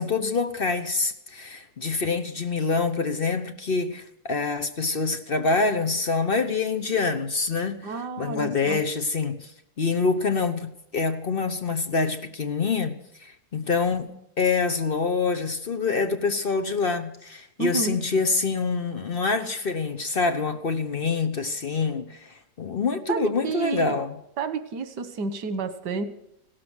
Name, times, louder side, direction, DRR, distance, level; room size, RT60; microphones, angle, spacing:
voice 1, 0.0-13.0 13.2-14.1 14.4-24.1, left 4 dB, 40° left, 0.9 m, -26 dB
voice 2, 7.8-8.8 17.6-18.0 23.1-24.0 24.4-26.0, right 5 dB, 85° right, 1.8 m, -30 dB
16.5 x 13.0 x 6.1 m
omnidirectional pair, 1.8 m